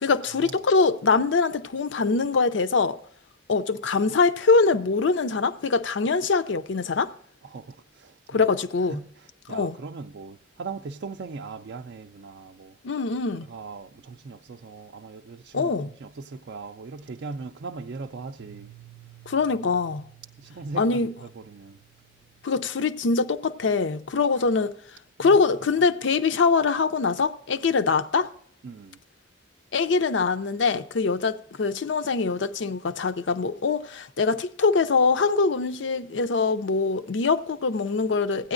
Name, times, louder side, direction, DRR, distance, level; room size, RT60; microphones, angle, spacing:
voice 1, 0.0-3.0 3.5-7.1 8.3-9.0 9.5-9.8 12.8-13.5 15.5-15.9 19.3-20.0 20.8-21.1 22.4-24.7 25.2-28.3 29.7-38.5, left 4 dB, 70° left, 0.5 m, -23 dB
voice 2, 7.5-8.5 8.9-12.8 13.5-15.7 16.0-18.7 20.4-21.8 24.4-24.5 25.2-25.4 28.6-29.0, right 4 dB, 60° right, 0.4 m, -39 dB
Piano, 18.4-24.0, right 13 dB, 25° right, 0.7 m, -53 dB
16.0 x 9.6 x 2.5 m
head